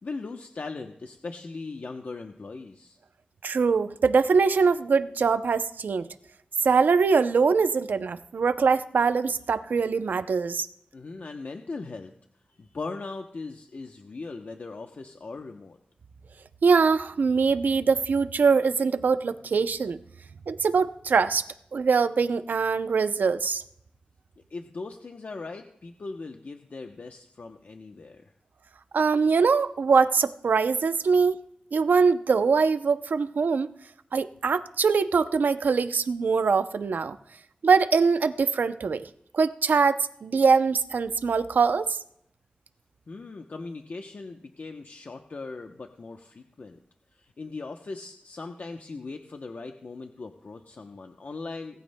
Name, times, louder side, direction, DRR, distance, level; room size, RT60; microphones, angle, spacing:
voice 1, 0.0-3.0 10.9-12.1 12.5-15.8 24.5-28.3 43.1-46.8 47.1-51.8, left 3 dB, 65° left, 4 dB, 0.8 m, -39 dB
voice 2, 3.4-6.1 6.6-10.7 16.6-20.0 20.5-21.4 21.7-23.6 28.9-31.4 31.7-33.7 34.1-37.2 37.6-39.1 39.3-42.0, right 5 dB, 90° right, 11 dB, 0.5 m, -23 dB
18.5 x 14.0 x 2.2 m, 0.73 s
wide cardioid pair, 60°, 3 cm